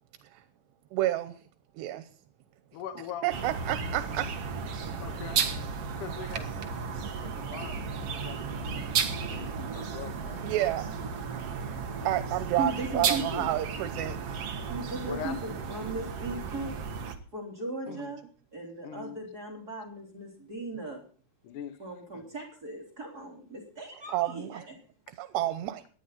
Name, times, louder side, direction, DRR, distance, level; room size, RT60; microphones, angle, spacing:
voice 1, 0.9-1.4 1.8-2.0 3.2-4.2 9.6-9.7 10.4-10.8 12.0-14.2 24.1-24.6 25.2-25.8, right 14 dB, 85° right, 10 dB, 3.1 m, -30 dB
voice 2, 2.7-3.3 5.0-5.5 6.0-8.5 8.9-10.4 15.0-15.5 17.9-18.1 18.8-19.2 21.4-21.8 22.1-22.2, left 8 dB, 65° left, 9 dB, 2.3 m, -42 dB
sound 1, 3.3-17.1, right 6 dB, 60° right, 1.6 m, -34 dB
voice 3, 12.6-13.5 14.7-16.7 17.3-18.2 18.5-21.0 21.8-24.7, right 2 dB, 25° right, 0 dB, 3.5 m, -37 dB
18.5 x 12.0 x 4.1 m, 0.41 s
omnidirectional pair, 4.8 m